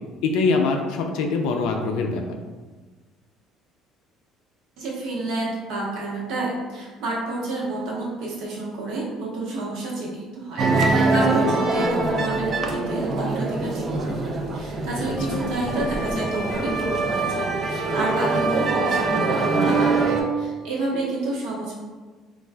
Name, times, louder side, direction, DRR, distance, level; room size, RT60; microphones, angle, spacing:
voice 1, 0.2-2.4 11.5-11.6 15.3-15.4, left 4 dB, 70° left, 3 dB, 0.3 m, -23 dB
voice 2, 4.8-21.7, right 2 dB, 65° right, -4 dB, 1.0 m, -30 dB
sound 1, 10.6-20.2, right 3 dB, 30° right, 0.3 m, -23 dB
4.3 x 2.3 x 2.2 m, 1.4 s
cardioid pair, 170°, 0 cm